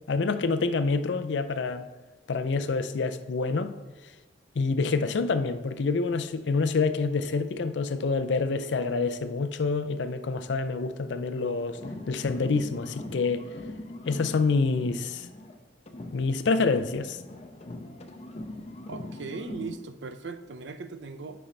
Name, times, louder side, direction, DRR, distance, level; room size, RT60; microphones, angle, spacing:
voice 1, 0.1-1.9 2.3-3.7 4.6-11.8 12.1-13.5 14.1-15.3 16.1-17.2, left 4 dB, 85° left, 0.5 m, -27 dB
sound 1, 11.7-15.6 15.9-19.8, left 1 dB, 35° left, 0.7 m, -41 dB
voice 2, 18.9-21.5, right 4 dB, 85° right, 0.5 m, -39 dB
8.7 x 5.5 x 3.3 m
head